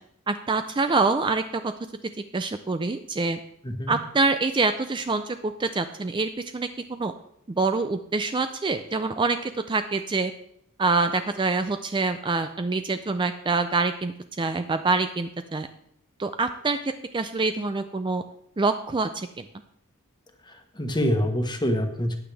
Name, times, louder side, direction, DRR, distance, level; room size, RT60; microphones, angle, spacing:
voice 1, 0.3-1.7 2.3-3.4 3.9-7.1 7.5-9.4 9.7-10.3 10.8-15.7 16.2-16.8 17.1-18.2 18.6-19.5, right 3 dB, 20° right, 9 dB, 0.4 m, -25 dB
voice 2, 3.6-4.0 20.4-22.2, equal, 20° left, 5 dB, 1.3 m, -26 dB
14.5 x 9.7 x 3.4 m, 0.72 s
head